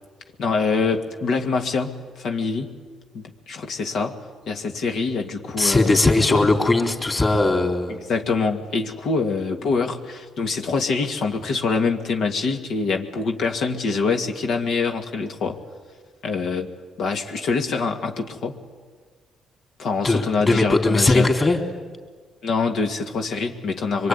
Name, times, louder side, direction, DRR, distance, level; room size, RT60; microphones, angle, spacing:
voice 1, 0.4-2.8 3.1-6.0 6.3-6.5 8.1-15.6 16.2-16.7 17.0-18.6 19.8-21.3 22.4-24.1, left 4 dB, 70° left, 4 dB, 2.1 m, -25 dB
voice 2, 5.6-8.0 20.0-21.6 24.0-24.1, left 2 dB, 25° left, 3 dB, 3.9 m, -19 dB
24.5 x 23.0 x 9.7 m, 1.5 s
cardioid pair, 90°, 0 cm